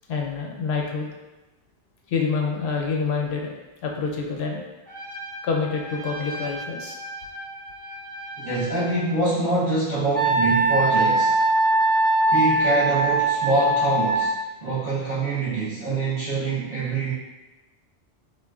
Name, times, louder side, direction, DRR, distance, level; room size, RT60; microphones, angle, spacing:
voice 1, 0.1-1.1 2.1-3.5 3.8-4.6 5.4-7.0, left 5 dB, 60° left, 0 dB, 0.7 m, -27 dB
Trumpet, 4.8-9.1, equal, 15° right, 1.2 m, -37 dB
voice 2, 8.4-11.4 12.3-14.4 14.6-17.1, right 2 dB, 40° right, -12 dB, 0.8 m, -25 dB
Wind instrument woodwind instrument, 10.1-14.4, right 2 dB, 5° left, 0.6 m, -21 dB
3.6 x 2.4 x 2.3 m, 1.1 s
omnidirectional pair, 1.2 m